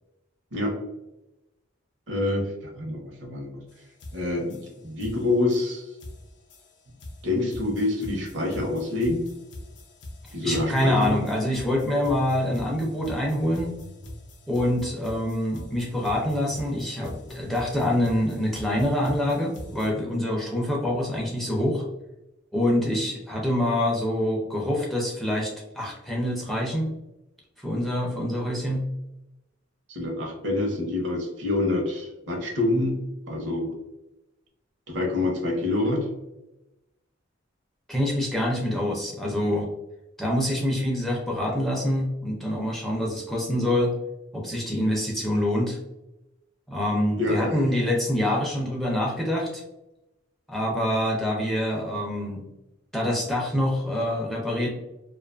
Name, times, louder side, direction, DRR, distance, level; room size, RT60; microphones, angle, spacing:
voice 1, 2.1-3.6 4.1-5.9 7.2-9.3 10.3-11.2 29.9-33.0 33.3-33.7 34.9-36.0 47.2-47.6, left 2 dB, 65° right, 2 dB, 0.7 m, -26 dB
sound 1, 3.7-3.8 4.0-19.9, left 1 dB, 65° left, 0.5 m, -42 dB
voice 2, 10.4-13.7 14.5-21.8 22.5-26.9 27.6-28.8 37.9-39.7 40.2-43.9 44.3-45.8 46.7-49.6 50.5-52.4 52.9-54.7, left 1 dB, ahead, -2 dB, 0.4 m, -26 dB
2.4 x 2.3 x 2.3 m, 0.93 s
head